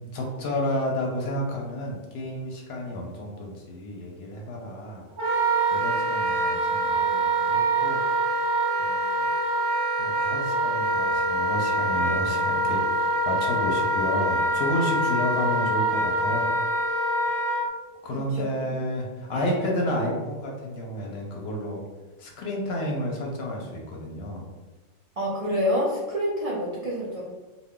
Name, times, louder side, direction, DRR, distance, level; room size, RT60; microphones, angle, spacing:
voice 1, 0.1-5.0 5.7-8.0 8.8-9.3 10.0-16.5 18.0-21.8 22.2-24.4, left 1 dB, 65° left, 0 dB, 0.7 m, -31 dB
Wind instrument woodwind instrument, 5.2-17.6, right 2 dB, 30° right, 0.7 m, -25 dB
voice 2, 18.1-18.4 19.3-19.6 25.2-27.2, equal, 60° right, -6 dB, 0.3 m, -27 dB
2.2 x 2.1 x 3.5 m, 1.2 s
omnidirectional pair, 1.3 m